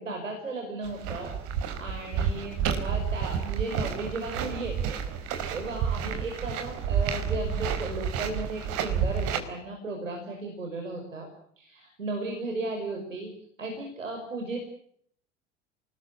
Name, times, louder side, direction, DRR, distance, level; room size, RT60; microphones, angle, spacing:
voice 1, 0.0-1.3 1.6-5.0 5.5-11.3 11.6-13.3 13.6-14.6, right 2 dB, 80° right, 2 dB, 5.8 m, -35 dB
sound 1, 0.8-9.4, right 7 dB, 55° right, 4.5 m, -30 dB
28.5 x 20.5 x 8.7 m, 0.67 s
figure-of-eight pair, 70°, 38 cm